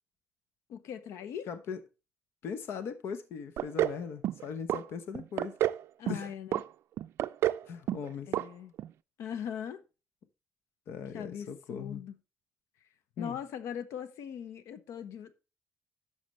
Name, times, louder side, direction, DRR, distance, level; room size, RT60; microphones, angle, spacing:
voice 1, 0.7-1.5 6.0-6.6 8.3-8.7 9.2-9.8 11.1-12.2 13.2-15.3, left 8 dB, 80° left, 1.0 m, -40 dB
voice 2, 1.5-1.8 2.4-5.6 6.1-6.3 7.7-8.3 10.9-12.0 13.2-13.4, left 6 dB, 60° left, 0.9 m, -39 dB
sound 1, 3.6-4.0 4.2-4.8 5.1-5.8 6.1-6.6 7.0-7.6 7.9-8.1 8.3-8.5 8.8-8.9, right 12 dB, 65° right, 0.4 m, -29 dB
11.5 x 6.9 x 3.1 m
cardioid pair, 165°, 5 cm